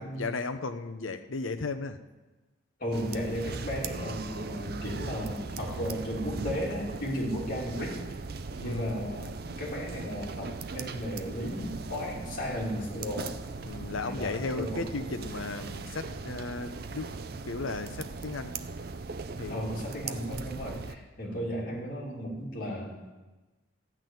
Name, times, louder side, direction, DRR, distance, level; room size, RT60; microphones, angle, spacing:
voice 1, 0.0-2.0 8.6-9.0 13.6-17.1 17.5-18.6 19.4-19.8 21.2-21.5, left 3 dB, 75° left, 9 dB, 0.8 m, -35 dB
voice 2, 2.8-8.0 8.6-13.4 14.0-14.9 19.5-23.0, equal, 45° left, -3 dB, 2.9 m, -35 dB
sound 1, 2.9-20.9, right 4 dB, 50° right, 0.5 m, -39 dB
14.0 x 6.1 x 9.2 m, 1.2 s
head